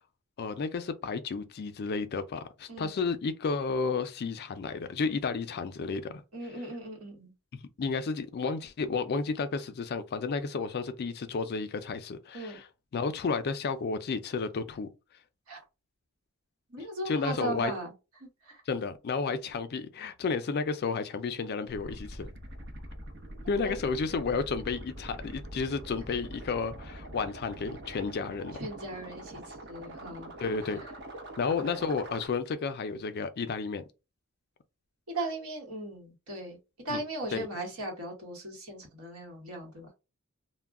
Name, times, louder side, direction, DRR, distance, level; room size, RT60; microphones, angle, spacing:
voice 1, 0.4-6.2 7.5-12.6 12.9-14.9 17.1-17.7 18.7-22.3 23.5-28.6 30.4-30.8 31.4-33.8 36.9-37.0 37.3-37.5, left 4 dB, 45° left, 0.4 m, -32 dB
voice 2, 2.7-3.0 6.3-7.3 12.3-12.6 15.5-15.6 16.7-17.9 18.2-18.6 23.6-23.7 28.5-30.3 30.6-30.9 35.1-36.6 36.8-39.9, right 2 dB, 75° right, 1.2 m, -38 dB
sound 1, 21.7-32.3, right 1 dB, 50° right, 0.8 m, -44 dB
2.2 x 2.1 x 3.5 m
head